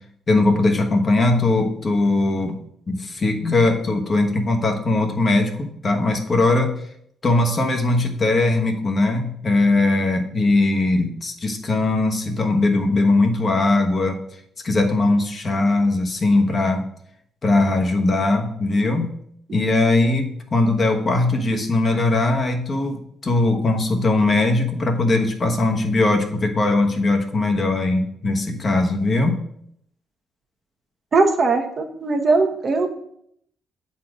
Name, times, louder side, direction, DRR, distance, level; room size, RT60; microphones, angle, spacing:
voice 1, 0.3-2.6 2.9-6.8 7.2-14.2 14.6-16.8 17.4-19.1 19.5-29.4, left 2 dB, 40° left, 3 dB, 1.2 m, -20 dB
voice 2, 31.1-32.9, right 3 dB, 45° right, 5 dB, 1.0 m, -19 dB
7.6 x 4.3 x 4.8 m, 0.71 s
cardioid pair, 90°, 0 cm